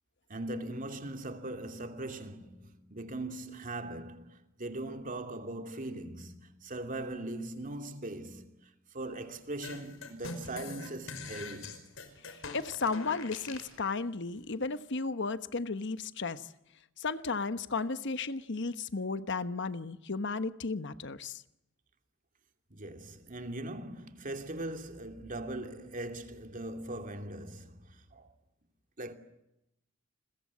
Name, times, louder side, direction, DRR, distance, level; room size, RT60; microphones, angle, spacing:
voice 1, 0.3-11.8 22.7-28.3 29.0-29.1, right 1 dB, 40° right, 2.8 m, -40 dB
sound 1, 9.6-13.7, left 3 dB, 75° left, 5.3 m, -43 dB
voice 2, 12.3-16.5 17.0-21.4, left 4 dB, 60° left, 1.1 m, -34 dB
30.0 x 22.0 x 8.5 m
head